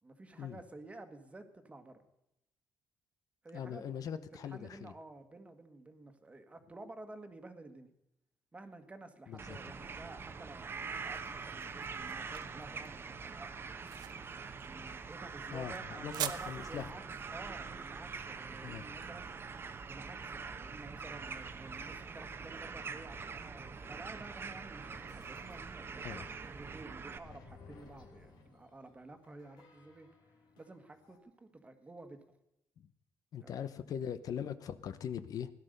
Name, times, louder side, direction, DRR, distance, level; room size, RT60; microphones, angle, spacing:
voice 1, 0.0-2.0 3.4-7.9 8.5-13.6 14.6-17.0 17.3-19.5 19.8-30.1 30.5-32.2 33.4-33.9, right 2 dB, 20° right, 7 dB, 1.6 m, -52 dB
voice 2, 3.5-4.9 9.3-9.6 15.5-16.9 18.6-18.9 26.0-26.3 32.8-32.9 33.3-35.5, left 8 dB, 60° left, 12 dB, 0.8 m, -41 dB
sound 1, 9.4-27.2, right 5 dB, 35° right, 1.0 m, -44 dB
sound 2, 10.6-19.7, right 11 dB, 80° right, 0.9 m, -46 dB
sound 3, 21.3-31.2, left 4 dB, 85° left, 3.2 m, -61 dB
16.5 x 11.5 x 6.7 m, 0.83 s
cardioid pair, 125°, 7 cm